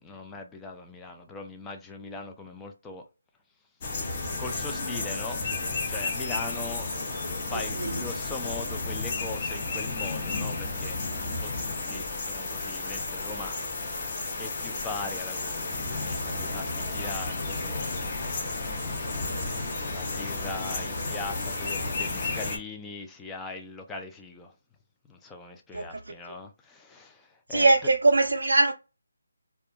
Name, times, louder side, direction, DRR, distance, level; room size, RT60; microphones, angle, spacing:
voice 1, 0.0-3.0 4.4-5.4 5.9-6.9 7.5-18.0 19.9-24.5 25.1-27.9, left 3 dB, 10° left, 0.3 m, -40 dB
sound 1, 3.8-22.6, left 3 dB, 30° left, 0.7 m, -32 dB
voice 2, 27.5-28.7, right 3 dB, 75° right, 0.4 m, -20 dB
2.4 x 2.2 x 2.8 m
figure-of-eight pair, 160°, 0 cm